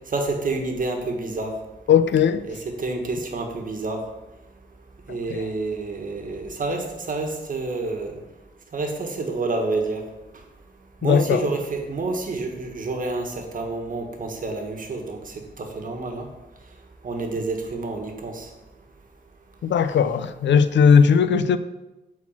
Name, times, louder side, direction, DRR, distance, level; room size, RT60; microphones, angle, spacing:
voice 1, 0.1-1.5 2.5-4.0 5.1-8.2 8.7-10.0 11.0-16.3 17.0-18.5, right 3 dB, 45° right, 1.4 m, -28 dB
voice 2, 1.9-2.4 5.3-5.5 11.0-11.5 19.6-21.6, left 6 dB, 70° left, 0.5 m, -18 dB
8.9 x 4.2 x 7.2 m
wide cardioid pair, 170°, 19 cm